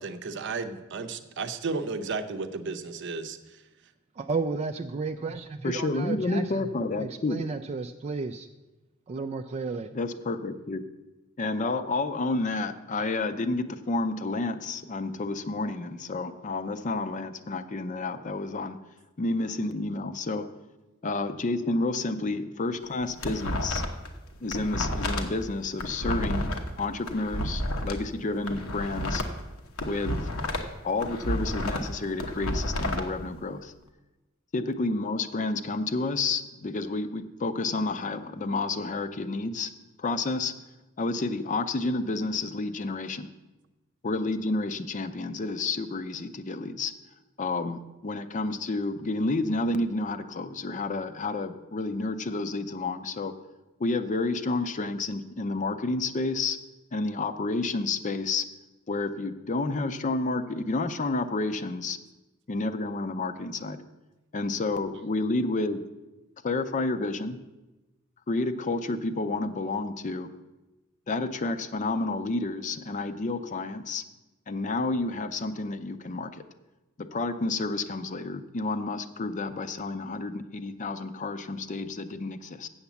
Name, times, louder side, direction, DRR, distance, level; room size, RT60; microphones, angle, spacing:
voice 1, 0.0-3.6, right 4 dB, 60° right, 9 dB, 0.7 m, -33 dB
voice 2, 4.2-6.7 7.0-8.5 9.1-9.9, right 4 dB, 30° right, 7 dB, 0.3 m, -33 dB
voice 3, 5.6-7.4 9.9-10.8 11.4-18.8 19.2-20.5 21.0-23.8 24.4-26.5 26.8-29.2 29.9-30.2 30.8-33.7 34.5-39.7 40.0-40.5 41.0-43.3 44.0-46.9 47.4-53.3 53.8-56.6 56.9-58.4 58.9-62.0 62.5-63.8 64.3-65.8 66.4-67.4 68.3-70.3 71.1-74.0 74.5-76.3 77.0-82.7, left 3 dB, 35° left, 10 dB, 0.5 m, -30 dB
sound 1, 22.8-24.1 24.4-27.9 28.4-30.7 31.0-33.0, left 1 dB, 85° left, 1.1 m, -31 dB
7.9 x 7.2 x 7.0 m, 1.1 s
head